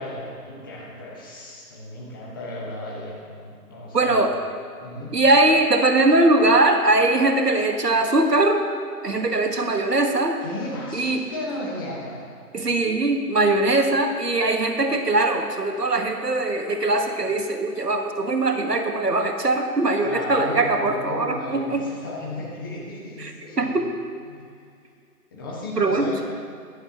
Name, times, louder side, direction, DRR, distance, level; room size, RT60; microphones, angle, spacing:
voice 1, 0.0-4.3 4.8-5.1 10.4-12.3 20.0-23.9 24.3-24.5 25.3-26.3, left 1 dB, 15° left, -5 dB, 1.1 m, -34 dB
voice 2, 3.9-4.3 5.1-8.6 9.0-10.4 10.9-11.2 12.5-21.8 23.2-23.9 25.8-26.1, right 2 dB, 75° right, 5 dB, 1.4 m, -21 dB
15.0 x 11.5 x 2.9 m, 2.3 s
figure-of-eight pair, 145°, 48 cm